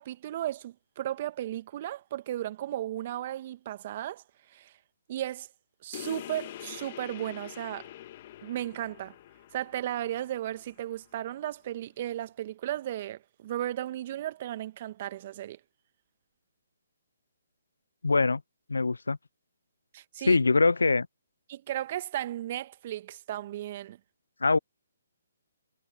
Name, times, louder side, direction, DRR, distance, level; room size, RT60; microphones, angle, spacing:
voice 1, 0.0-4.2 4.5-4.7 5.1-5.5 5.8-7.9 8.4-9.1 9.5-15.6 19.9-20.4 21.5-24.0, right 12 dB, 40° right, 1.5 m, -35 dB
sound 1, 5.9-11.0, left 13 dB, 40° left, 1.5 m, -45 dB
voice 2, 18.0-18.4 18.7-19.2 20.2-21.1 24.4-24.6, left 3 dB, 80° left, 0.3 m, -23 dB
figure-of-eight pair, 140°, 0 cm